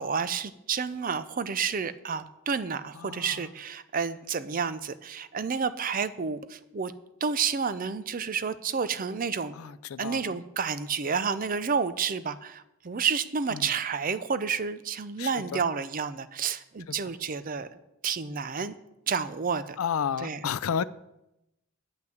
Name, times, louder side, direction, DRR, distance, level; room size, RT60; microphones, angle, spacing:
voice 1, 0.0-6.9 7.2-9.5 10.0-17.7 18.0-18.7 19.1-19.8 20.2-20.5, right 6 dB, 40° right, 14 dB, 0.5 m, -30 dB
voice 2, 3.0-3.4 9.6-10.3 13.5-13.7 15.2-15.6 16.9-17.0 19.8-20.8, left 7 dB, 80° left, 17 dB, 0.4 m, -31 dB
9.0 x 5.9 x 7.7 m, 0.89 s
head